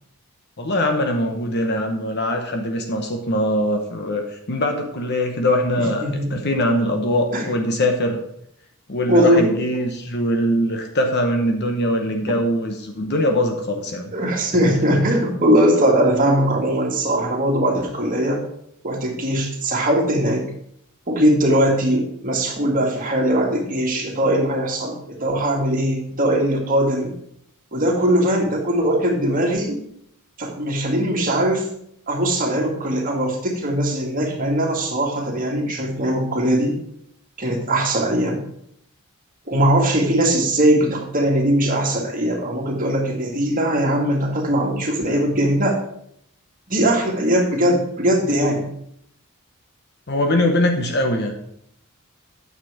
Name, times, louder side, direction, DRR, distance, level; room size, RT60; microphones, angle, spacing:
voice 1, 0.6-6.0 6.3-8.2 8.9-14.1 50.1-51.3, left 1 dB, 50° left, 4 dB, 1.0 m, -22 dB
voice 2, 6.0-6.3 7.3-7.5 9.1-9.5 14.1-18.4 18.8-20.5 21.1-27.1 27.7-29.8 30.4-31.7 32.1-36.8 37.4-38.4 39.5-45.8 46.7-48.7, right 1 dB, 40° right, 0 dB, 2.0 m, -20 dB
9.0 x 6.8 x 4.9 m, 0.71 s
head